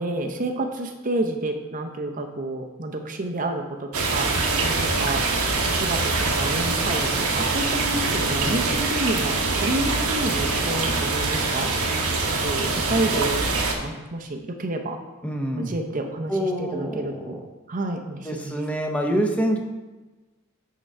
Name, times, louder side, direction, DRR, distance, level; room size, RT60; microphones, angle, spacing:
voice 1, 0.0-15.0 15.6-17.4 17.7-18.7, right 2 dB, 35° right, 4 dB, 0.6 m, -30 dB
sound 1, 3.9-13.8, right 3 dB, 90° right, 1.2 m, -24 dB
voice 2, 15.2-15.7 16.3-17.4 18.3-19.6, right 1 dB, 5° left, 2 dB, 0.8 m, -26 dB
8.9 x 3.8 x 5.4 m, 1.2 s
head